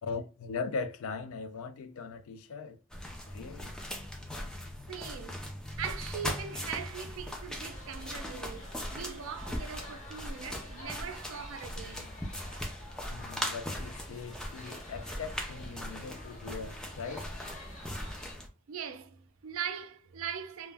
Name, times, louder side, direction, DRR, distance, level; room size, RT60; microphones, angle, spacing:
voice 1, 0.0-2.8 3.3-3.7 13.1-17.2, left 4 dB, 80° left, 0.4 m, -39 dB
sound 1, 2.9-18.5, equal, 5° left, 0.3 m, -40 dB
voice 2, 4.9-12.1 18.7-20.7, right 8 dB, 80° right, 0.4 m, -41 dB
sound 2, 7.7-18.3, left 1 dB, 35° left, 0.7 m, -50 dB
2.2 x 2.1 x 3.3 m
head